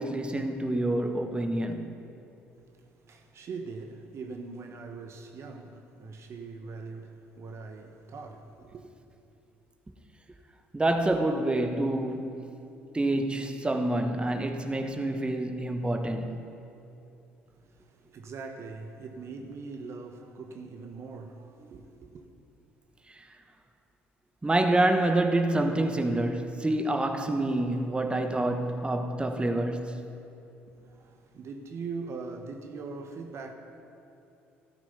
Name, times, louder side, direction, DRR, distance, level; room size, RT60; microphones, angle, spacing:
voice 1, 0.0-2.0 10.7-12.4 12.9-16.4 21.6-21.7 23.1-23.2 24.4-30.1, right 1 dB, 15° right, 1.2 m, -27 dB
voice 2, 2.7-8.9 17.5-22.3 30.7-33.5, right 4 dB, 50° right, 1.2 m, -42 dB
13.5 x 13.0 x 5.6 m
hypercardioid pair, 60°, 6 cm